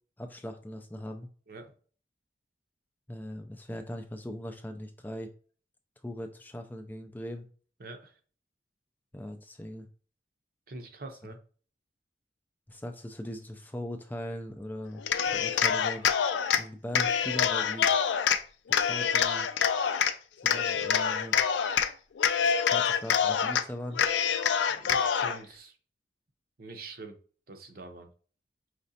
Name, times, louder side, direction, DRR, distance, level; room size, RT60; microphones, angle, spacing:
voice 1, 0.2-1.3 3.1-5.3 6.0-7.5 9.1-9.9 11.2-11.3 12.7-15.0 15.3-16.1 16.5-17.9 18.7-19.5 20.4-21.4 22.7-24.0, equal, 10° left, 0.4 m, -39 dB
voice 2, 7.8-8.1 10.7-11.4 24.7-25.7 26.6-27.2 27.5-28.1, right 2 dB, 55° right, 0.7 m, -44 dB
Cheering, 15.0-16.6 16.9-18.4 18.7-20.1 20.5-21.9 22.2-23.6 24.0-25.4, left 7 dB, 85° left, 0.4 m, -26 dB
4.9 x 3.1 x 2.7 m
head